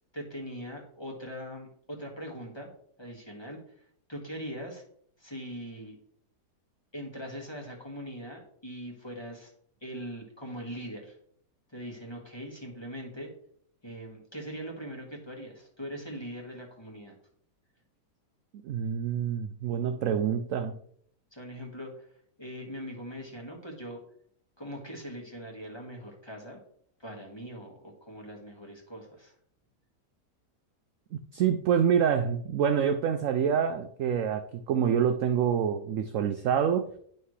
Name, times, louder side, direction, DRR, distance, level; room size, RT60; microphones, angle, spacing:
voice 1, 0.1-2.7 3.0-3.6 4.1-4.8 5.2-5.9 6.9-9.5 9.8-11.2 11.7-13.3 13.8-17.1 21.3-22.1 22.4-24.0 24.6-26.6 27.0-29.3, equal, 15° left, 0 dB, 1.6 m, -41 dB
voice 2, 18.6-20.8 31.1-36.9, right 8 dB, 70° right, 9 dB, 0.7 m, -26 dB
10.0 x 5.7 x 3.2 m, 0.64 s
omnidirectional pair, 1.8 m